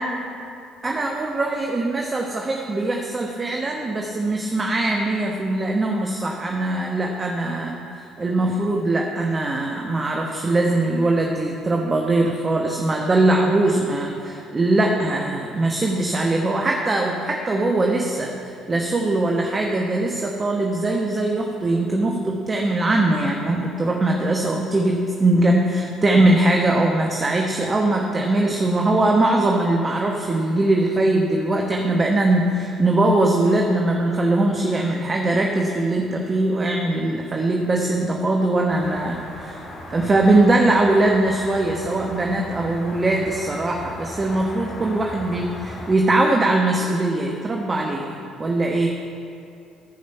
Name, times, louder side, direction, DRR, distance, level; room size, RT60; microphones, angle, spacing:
voice 1, 0.8-39.6 39.9-48.9, right 2 dB, 30° right, 1 dB, 1.1 m, -21 dB
sound 1, 38.7-45.9, left 1 dB, 45° left, 2.6 m, -37 dB
15.5 x 5.3 x 5.5 m, 2.5 s
hypercardioid pair, 55°, 0 cm